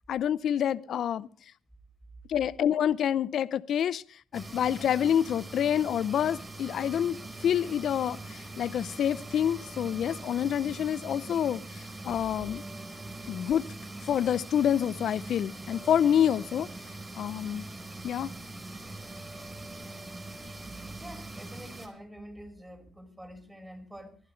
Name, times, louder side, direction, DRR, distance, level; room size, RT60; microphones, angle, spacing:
voice 1, 0.1-1.3 2.3-4.0 4.3-12.6 13.3-13.6 14.0-16.7 17.2-17.7 18.0-18.3, left 9 dB, 70° left, 0.6 m, -27 dB
sound 1, 4.3-21.9, right 2 dB, 30° right, 4.5 m, -42 dB
voice 2, 21.0-24.2, equal, 10° right, 5.4 m, -46 dB
24.5 x 11.5 x 3.2 m
supercardioid pair, 55°, 0 cm